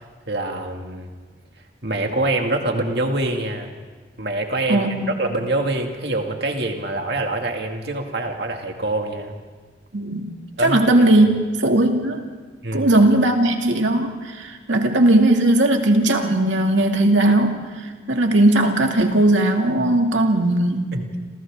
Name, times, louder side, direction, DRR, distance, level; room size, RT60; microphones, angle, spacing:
voice 1, 0.3-1.1 1.8-3.7 4.2-9.4 10.6-10.8 12.6-12.9 20.9-21.1, right 2 dB, 55° right, 2 dB, 2.3 m, -25 dB
voice 2, 4.7-5.2 9.9-10.3 10.6-11.3 11.6-12.2 12.7-17.6 18.1-21.0, right 1 dB, 80° right, 3 dB, 2.4 m, -18 dB
29.5 x 27.0 x 3.7 m, 1.4 s
head